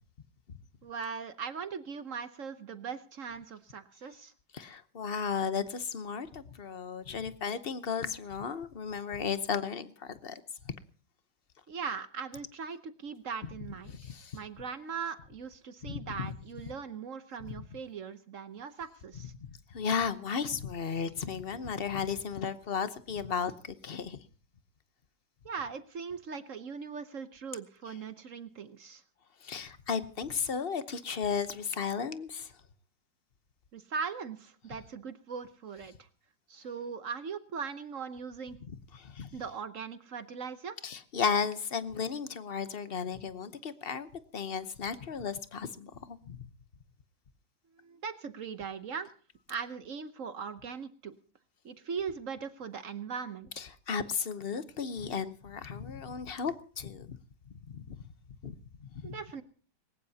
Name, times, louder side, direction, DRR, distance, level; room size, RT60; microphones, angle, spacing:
voice 1, 0.8-4.3 11.7-14.0 14.3-19.3 25.4-29.0 33.7-36.1 36.5-38.6 39.3-40.8 47.8-49.1 49.5-51.1 51.6-53.5 59.0-59.4, right 6 dB, 50° right, 1.0 m, -40 dB
voice 2, 4.5-10.4 13.9-14.4 15.8-16.3 19.4-24.2 29.4-32.5 38.7-39.3 40.8-46.5 53.6-57.2 57.7-57.9 58.4-58.5 58.8-59.2, left 6 dB, 45° left, 0.8 m, -34 dB
21.0 x 19.0 x 2.8 m
omnidirectional pair, 2.1 m